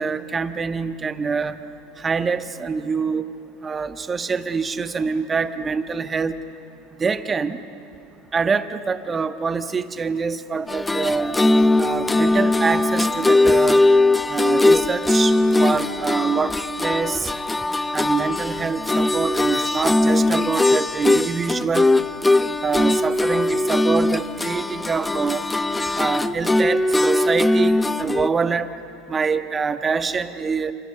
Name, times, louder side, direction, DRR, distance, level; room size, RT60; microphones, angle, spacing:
voice 1, 0.0-1.6 2.0-3.3 3.6-6.4 7.0-7.6 8.3-13.8 14.3-17.3 17.9-22.0 22.6-25.5 25.9-28.7 29.1-30.7, right 5 dB, 25° right, 10 dB, 1.3 m, -25 dB
sound 1, 10.7-28.3, left 2 dB, 10° left, 0.7 m, -20 dB
29.0 x 27.0 x 6.9 m, 2.8 s
hypercardioid pair, 85°, 0 cm